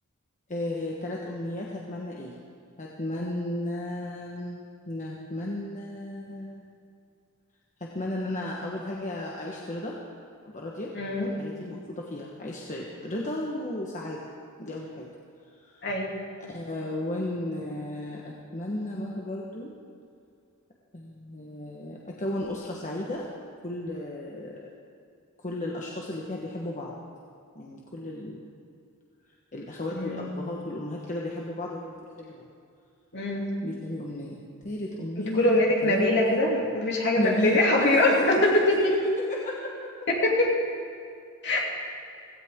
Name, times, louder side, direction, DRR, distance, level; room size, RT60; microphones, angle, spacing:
voice 1, 0.5-2.3 2.8-6.6 7.8-10.0 10.5-10.9 11.2-14.2 14.6-15.1 15.6-15.9 16.4-19.7 20.9-23.3 23.6-24.5 25.4-27.0 27.5-28.4 29.5-32.4 33.6-36.4 37.2-39.9, left 1 dB, 35° left, -3 dB, 1.3 m, -34 dB
voice 2, 10.9-11.3 15.8-16.1 29.9-30.3 33.1-33.5 35.2-38.8 40.1-40.5 41.4-41.7, left 1 dB, 55° left, -2 dB, 2.8 m, -23 dB
16.5 x 16.0 x 3.7 m, 2.4 s
head